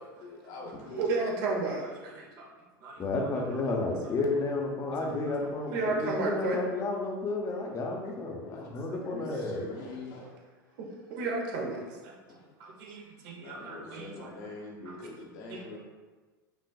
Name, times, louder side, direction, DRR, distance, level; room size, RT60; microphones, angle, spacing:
voice 1, 0.0-1.0 1.5-1.7 2.3-2.5 4.3-4.4 5.0-5.2 7.5-7.6 8.4-10.3 12.3-12.5 13.2-15.8, left 2 dB, 60° left, -2 dB, 1.1 m, -44 dB
voice 2, 0.9-2.5 2.8-3.6 5.0-5.3 5.7-6.6 10.2-10.3 10.8-12.2 12.6-14.3 14.9-15.0 15.5-15.8, right 3 dB, 60° right, -1 dB, 0.9 m, -34 dB
voice 3, 3.0-9.6, left 3 dB, 25° left, 0 dB, 0.8 m, -32 dB
5.9 x 2.5 x 2.3 m, 1.3 s
hypercardioid pair, 95°, 11 cm